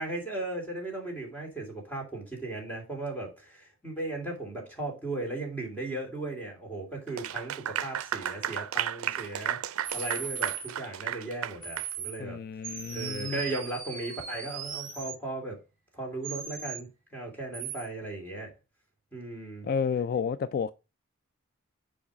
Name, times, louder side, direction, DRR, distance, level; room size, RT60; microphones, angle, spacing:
voice 1, 0.0-12.4 12.9-15.6 15.9-18.5 19.1-19.7, right 2 dB, 10° left, 2.9 m, -37 dB
Clapping / Applause, 7.1-11.9, right 10 dB, 90° right, 0.4 m, -33 dB
sound 1, 9.8-10.7 11.6-12.2 12.6-15.2 16.2-16.8 17.5-17.8, right 7 dB, 45° right, 2.2 m, -38 dB
voice 2, 12.2-13.4 19.6-20.7, left 6 dB, 50° left, 0.3 m, -31 dB
7.2 x 4.8 x 5.0 m
head